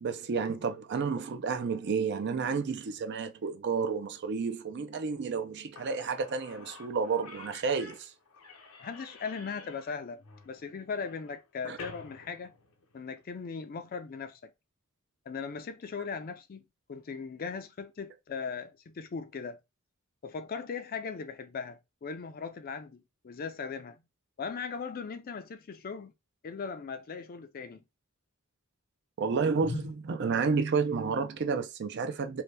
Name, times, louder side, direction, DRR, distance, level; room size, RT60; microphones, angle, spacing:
voice 1, 0.0-8.1 11.6-11.8 29.2-32.4, right 5 dB, 55° right, 0.4 m, -31 dB
Slam / Squeak, 5.4-5.5 5.7-13.2, left 3 dB, 90° left, 0.7 m, -51 dB
voice 2, 8.8-12.5 12.9-14.5 15.3-19.6 20.2-24.0 24.4-26.1 26.4-27.8 29.6-29.9, left 5 dB, 45° left, 0.4 m, -39 dB
2.7 x 2.2 x 3.2 m
head